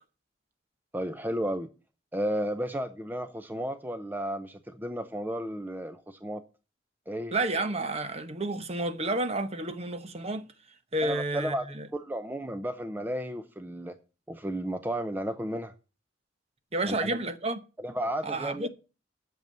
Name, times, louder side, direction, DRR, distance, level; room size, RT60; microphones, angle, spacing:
voice 1, 0.9-1.7 2.1-6.4 7.1-7.4 11.0-11.7 11.9-13.9 14.3-15.7 16.9-17.2 17.8-18.7, right 1 dB, 10° right, 0.6 m, -33 dB
voice 2, 7.3-10.5 10.9-11.9 16.7-17.6 18.2-18.7, right 2 dB, 35° right, 1.0 m, -30 dB
8.1 x 7.0 x 7.4 m
head